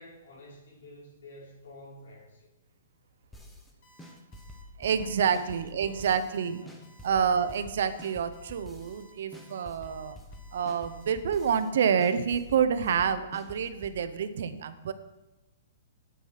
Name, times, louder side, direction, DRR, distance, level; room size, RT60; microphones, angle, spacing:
voice 1, 0.0-2.5 4.8-6.0 6.6-6.8, left 1 dB, 75° left, -3 dB, 4.8 m, -50 dB
sound 1, 3.3-3.7 4.0-6.4 6.7-9.0 9.3-11.7 12.0-14.0, left 1 dB, 5° left, 0.8 m, -47 dB
Alarm, 3.8-11.6, right 2 dB, 30° left, 1.8 m, -59 dB
voice 2, 4.8-6.6 7.0-10.2 10.5-14.9, right 7 dB, 55° right, 11 dB, 0.8 m, -28 dB
9.3 x 8.3 x 5.7 m, 0.99 s
hypercardioid pair, 180°, 0 cm